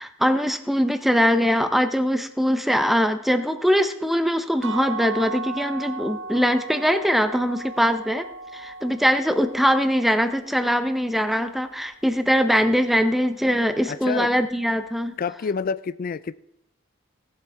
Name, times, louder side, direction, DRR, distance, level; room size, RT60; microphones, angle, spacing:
voice 1, 0.0-8.3 8.5-15.1, equal, ahead, 8 dB, 0.8 m, -22 dB
sound 1, 4.6-10.4, right 3 dB, 75° right, 0.8 m, -36 dB
voice 2, 13.9-14.3 15.2-16.4, left 5 dB, 45° left, 17 dB, 0.4 m, -28 dB
17.5 x 7.9 x 3.5 m, 0.84 s
head